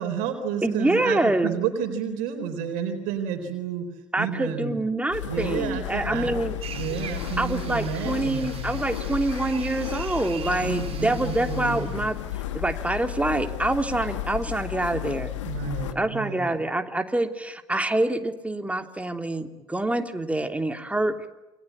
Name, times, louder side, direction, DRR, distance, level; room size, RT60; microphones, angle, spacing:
voice 1, 0.0-3.9 4.2-4.8 5.2-6.3 6.6-8.7 10.6-12.0 15.4-16.5, right 7 dB, 60° right, 5 dB, 4.2 m, -31 dB
voice 2, 0.6-1.5 4.1-6.5 7.4-12.2 12.5-15.3 15.9-21.3, right 2 dB, 10° right, 6 dB, 3.1 m, -26 dB
sound 1, 5.1-15.9, left 13 dB, 75° left, 2.0 m, -33 dB
sound 2, 6.6-12.1, right 8 dB, 40° right, 3.6 m, -42 dB
28.5 x 23.0 x 8.7 m, 1.0 s
figure-of-eight pair, 60°, 16 cm